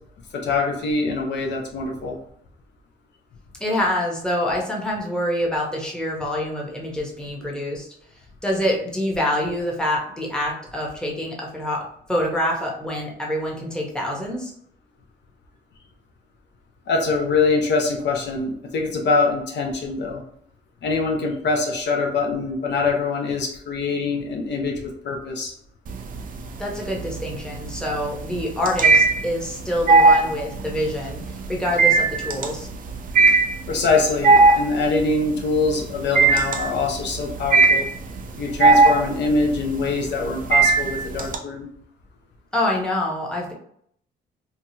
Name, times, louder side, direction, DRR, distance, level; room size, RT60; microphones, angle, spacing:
voice 1, 0.3-2.2 16.9-20.2 20.8-25.5 33.7-37.9 38.4-41.7, left 3 dB, 60° left, 1 dB, 0.6 m, -23 dB
voice 2, 3.6-7.9 8.4-11.8 12.1-14.5 26.6-31.2 31.5-32.7 42.5-43.5, left 1 dB, 5° left, -3 dB, 0.8 m, -26 dB
sound 1, 25.9-26.5 26.9-41.4, right 3 dB, 45° right, 0.5 m, -17 dB
2.8 x 2.3 x 2.7 m, 0.67 s
cardioid pair, 90°, 20 cm